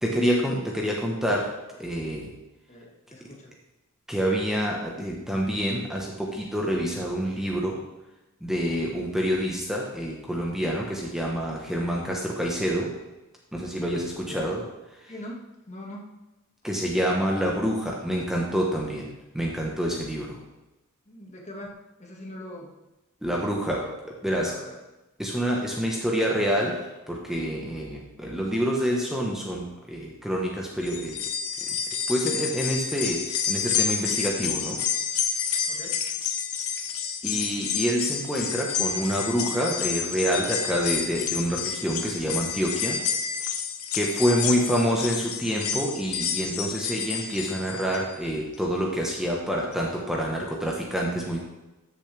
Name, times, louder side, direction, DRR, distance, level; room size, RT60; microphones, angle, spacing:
voice 1, 0.0-1.5 1.8-2.3 4.1-7.8 8.4-12.9 13.5-14.6 16.6-20.4 23.2-23.9 24.2-24.6 25.2-26.8 27.1-31.2 32.1-33.2 33.5-34.8 37.2-43.0 43.9-51.4, equal, ahead, -2 dB, 1.2 m, -27 dB
voice 2, 2.7-3.5 13.9-14.0 14.3-14.5 15.1-15.4 15.7-16.0 21.1-21.7 22.0-22.7 23.2-23.9 24.2-24.8 35.7-35.9 44.4-44.6, left 1 dB, 30° left, -1 dB, 1.8 m, -42 dB
sound 1, 30.8-48.1 48.5-48.6 49.7-49.8, left 7 dB, 70° left, 1.0 m, -29 dB
14.0 x 7.0 x 3.4 m, 1.0 s
head